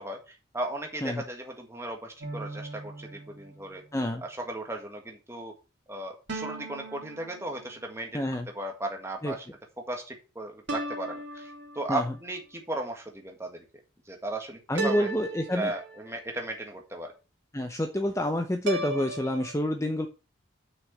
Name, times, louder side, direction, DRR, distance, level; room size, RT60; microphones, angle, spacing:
voice 1, 0.0-3.8 4.2-5.5 5.9-8.2 8.5-9.5 9.9-13.6 14.0-15.1 15.5-17.1, right 1 dB, 15° right, 2 dB, 1.7 m, -36 dB
sound 1, 2.2-3.9 6.3-8.0 10.7-12.2 14.8-16.4 18.7-19.5, right 2 dB, 65° right, 2.0 m, -37 dB
voice 2, 3.9-4.2 8.1-8.5 9.2-9.3 11.9-12.0 14.7-15.7 17.5-20.1, left 1 dB, 15° left, 5 dB, 0.7 m, -28 dB
6.3 x 6.3 x 6.3 m, 0.32 s
head